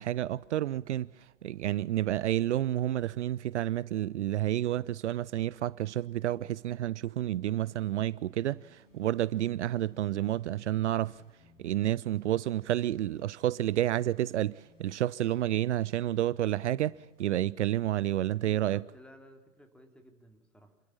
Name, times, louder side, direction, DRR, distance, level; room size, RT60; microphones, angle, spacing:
voice 1, 0.0-11.2 11.6-18.8, right 13 dB, 65° right, 0.6 m, -30 dB
sound 1, 7.6-19.1, left 3 dB, 75° left, 6.1 m, -65 dB
voice 2, 18.4-20.7, equal, 5° left, 2.7 m, -55 dB
28.5 x 13.0 x 7.2 m
figure-of-eight pair, 110°, 38 cm